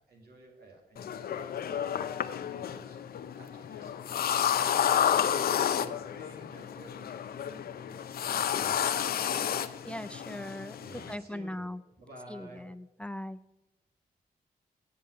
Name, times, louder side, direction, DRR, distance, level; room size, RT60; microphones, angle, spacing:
voice 1, 0.1-3.9 4.4-9.5 10.8-11.7 12.0-12.6, right 2 dB, 85° right, 0 dB, 2.3 m, -52 dB
sound 1, 1.0-11.2, left 9 dB, 80° left, 0.5 m, -31 dB
voice 2, 9.9-10.8 11.1-11.8 12.3-13.4, left 1 dB, 5° left, 15 dB, 0.4 m, -39 dB
8.5 x 5.5 x 7.7 m, 0.97 s
cardioid pair, 55°, 16 cm